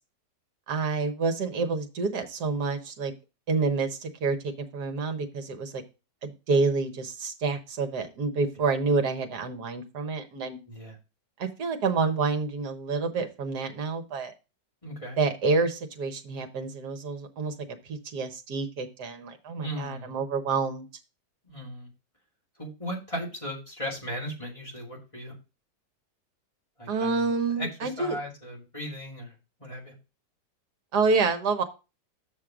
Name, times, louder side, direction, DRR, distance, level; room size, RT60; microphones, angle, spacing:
voice 1, 0.7-3.1 3.5-5.8 6.2-10.6 11.4-14.3 15.2-17.5 17.9-20.9 26.9-28.2 30.9-31.6, right 4 dB, 70° right, 6 dB, 1.7 m, -28 dB
voice 2, 14.8-15.2 19.6-20.2 21.4-21.9 22.6-25.3 26.8-27.3 27.6-29.3 29.6-29.9, equal, 20° left, -3 dB, 2.5 m, -37 dB
7.6 x 6.5 x 3.7 m, 0.30 s
omnidirectional pair, 1.9 m